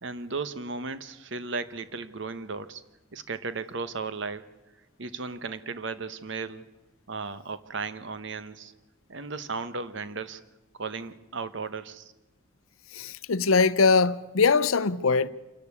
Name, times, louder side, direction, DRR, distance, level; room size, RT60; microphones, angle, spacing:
voice 1, 0.0-2.8 3.1-4.5 5.0-6.6 7.1-8.7 9.1-10.4 10.8-12.1, right 4 dB, 60° right, 1.0 m, -35 dB
voice 2, 12.9-15.3, left 4 dB, 90° left, 0.7 m, -22 dB
26.5 x 12.0 x 8.4 m
head